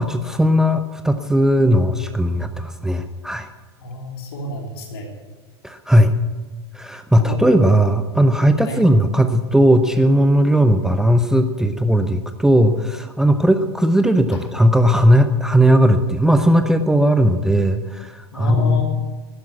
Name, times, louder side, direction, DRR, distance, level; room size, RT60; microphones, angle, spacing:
voice 1, 0.0-3.5 5.6-6.1 6.7-18.8, equal, 5° right, 8 dB, 0.6 m, -17 dB
voice 2, 3.8-5.1 7.1-7.4 8.6-8.8 18.3-18.8, left 1 dB, 60° left, 1 dB, 3.3 m, -29 dB
11.5 x 10.5 x 8.2 m, 1.4 s
figure-of-eight pair, 90°, 14 cm